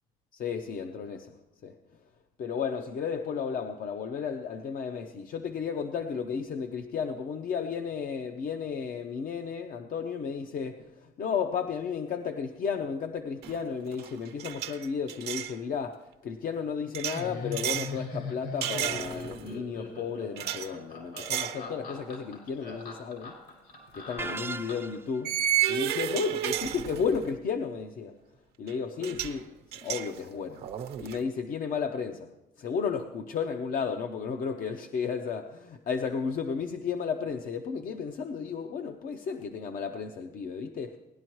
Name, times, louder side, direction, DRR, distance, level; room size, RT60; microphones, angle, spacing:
voice 1, 0.3-1.3 1.6-1.7 2.4-16.0 16.2-23.3 23.9-25.3 25.7-28.2 28.6-30.6 31.0-32.3 32.6-41.0, left 6 dB, 55° left, 5 dB, 0.7 m, -33 dB
sound 1, 13.4-13.7 13.9-15.5 16.9-18.0 18.6-19.5 20.4-20.7 21.2-21.6 22.1-22.2 23.8-23.9 25.3-27.3 28.7-28.8 29.0-29.4 29.7-31.2, right 11 dB, 70° right, 0.9 m, -32 dB
Laughter, 17.1-25.0, left 3 dB, 75° left, 5.1 m, -40 dB
sound 2, 24.2-25.2, right 3 dB, 15° right, 0.4 m, -37 dB
18.5 x 11.0 x 3.1 m, 0.99 s
cardioid pair, 110°, 17 cm